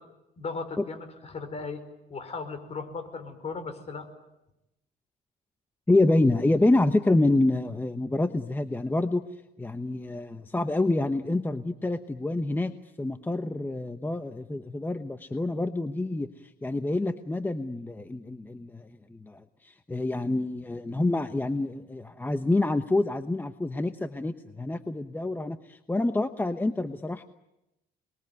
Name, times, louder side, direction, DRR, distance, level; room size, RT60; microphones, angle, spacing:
voice 1, 0.4-1.8 2.1-4.1, left 4 dB, 40° left, 9 dB, 5.1 m, -37 dB
voice 2, 5.9-9.2 9.6-27.2, left 2 dB, 10° left, 9 dB, 1.0 m, -27 dB
28.5 x 21.5 x 9.4 m, 0.91 s
cardioid pair, 110°, 17 cm